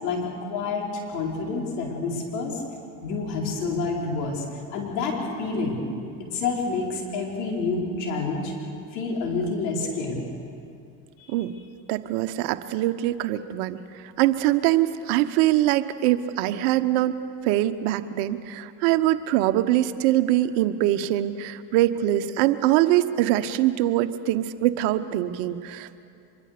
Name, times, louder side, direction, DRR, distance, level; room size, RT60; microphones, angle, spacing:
voice 1, 0.0-2.6 3.0-4.4 4.7-5.8 6.2-8.5 8.9-10.3 11.2-11.3, left 4 dB, 80° left, -1 dB, 5.0 m, -28 dB
voice 2, 11.9-17.1 17.4-26.1, right 14 dB, 70° right, 11 dB, 1.2 m, -23 dB
25.0 x 23.0 x 6.8 m, 2.5 s
hypercardioid pair, 75°, 48 cm